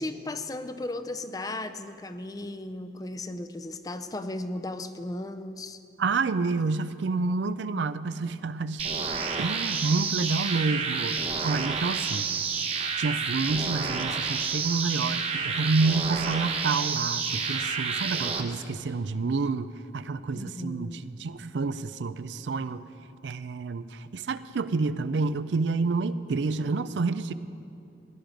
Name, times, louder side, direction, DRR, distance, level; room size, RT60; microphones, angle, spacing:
voice 1, 0.0-5.8 20.4-21.1, left 2 dB, 20° left, 10 dB, 0.4 m, -36 dB
voice 2, 6.0-8.8 9.4-12.3 13.0-22.8 23.2-27.3, right 4 dB, 85° right, 14 dB, 0.5 m, -29 dB
sound 1, 8.8-18.4, right 5 dB, 35° right, 0.8 m, -29 dB
16.5 x 10.5 x 5.1 m, 2.6 s
head